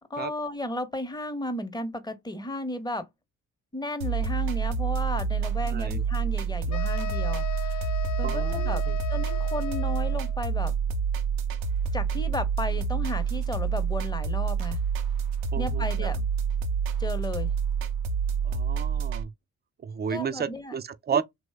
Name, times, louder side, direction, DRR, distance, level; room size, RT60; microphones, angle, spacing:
voice 1, 0.1-3.1 3.7-8.8 9.1-10.7 11.9-14.8 15.6-16.2 17.0-17.5 20.1-20.7, left 1 dB, 10° left, 0.8 m, -34 dB
sound 1, 4.0-19.2, right 6 dB, 85° right, 0.5 m, -28 dB
voice 2, 5.7-6.0 8.2-9.0 15.5-16.1 18.4-19.3 19.8-21.2, right 7 dB, 30° right, 0.4 m, -32 dB
sound 2, 6.7-10.4, left 15 dB, 55° left, 0.5 m, -37 dB
3.0 x 2.1 x 3.3 m
hypercardioid pair, 45°, 36 cm